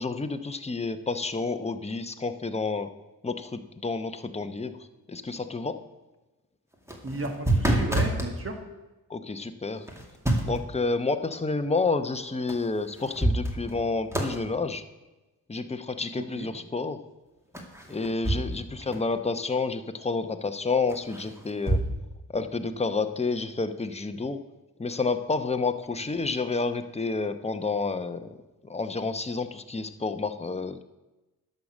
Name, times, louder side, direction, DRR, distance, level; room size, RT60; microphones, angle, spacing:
voice 1, 0.0-2.9 3.2-5.8 9.1-9.8 10.4-14.8 15.5-17.0 17.9-21.8 22.3-24.4 24.8-28.4 28.7-30.8, left 3 dB, 15° left, 8 dB, 0.8 m, -29 dB
sound 1, 6.7-8.3 9.9-10.7 12.5-12.6 13.0-13.8 14.1-14.4 17.5-18.7 18.9-19.0 20.9-21.9, right 1 dB, 5° right, 2.1 m, -27 dB
voice 2, 7.0-8.6 16.2-16.5 18.9-19.0, right 2 dB, 35° right, 5 dB, 1.9 m, -34 dB
11.0 x 6.7 x 6.2 m, 1.1 s
cardioid pair, 70°, 38 cm